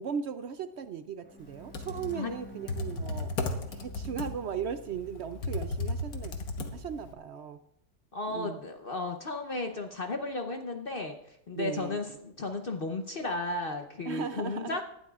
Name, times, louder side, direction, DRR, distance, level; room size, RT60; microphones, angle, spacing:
voice 1, 0.0-6.4 6.7-7.6 8.3-8.6 11.6-12.0 14.1-14.8, right 7 dB, 70° right, 11 dB, 0.6 m, -37 dB
Bowed string instrument, 1.2-4.8, right 1 dB, 10° left, 0.8 m, -51 dB
Computer keyboard, 1.5-7.1, left 2 dB, 75° left, 1.6 m, -35 dB
voice 2, 8.1-14.8, left 2 dB, 45° left, 4 dB, 0.8 m, -34 dB
18.5 x 12.0 x 2.4 m, 0.79 s
omnidirectional pair, 1.6 m